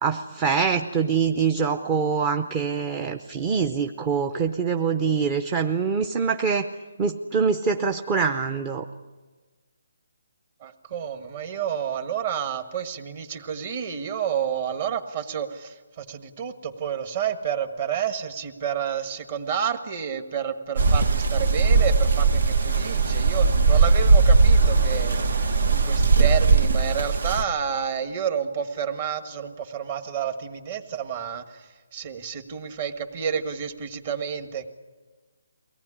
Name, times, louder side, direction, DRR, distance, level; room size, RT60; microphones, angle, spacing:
voice 1, 0.0-6.7 7.0-8.8, right 6 dB, 20° right, 6 dB, 0.7 m, -24 dB
voice 2, 10.6-34.7, right 8 dB, 35° right, 8 dB, 1.6 m, -30 dB
sound 1, 20.8-27.4, right 4 dB, 70° right, 1.4 m, -19 dB
23.0 x 18.0 x 9.9 m, 1.4 s
hypercardioid pair, 165°, 0 cm